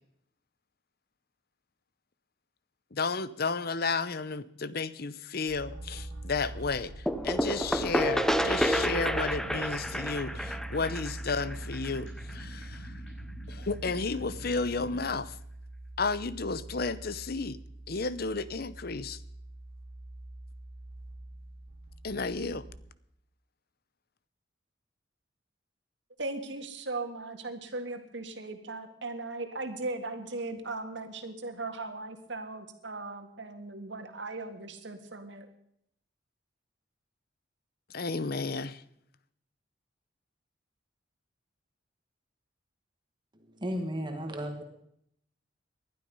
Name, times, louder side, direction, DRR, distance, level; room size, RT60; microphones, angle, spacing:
voice 1, 2.9-12.9 13.5-15.4 16.0-17.6 17.9-19.2 22.0-22.6 37.9-38.8, left 4 dB, 50° left, 16 dB, 0.8 m, -32 dB
sound 1, 5.5-22.8, right 1 dB, 80° right, 1.9 m, -43 dB
sound 2, 7.1-12.6, equal, 5° left, 0.7 m, -30 dB
sound 3, 7.6-15.2, left 1 dB, 75° left, 6.7 m, -49 dB
voice 2, 26.2-35.5, right 2 dB, 65° right, 6 dB, 2.0 m, -38 dB
voice 3, 43.6-44.6, equal, 25° right, 4 dB, 1.8 m, -34 dB
20.0 x 12.0 x 5.5 m, 0.72 s
head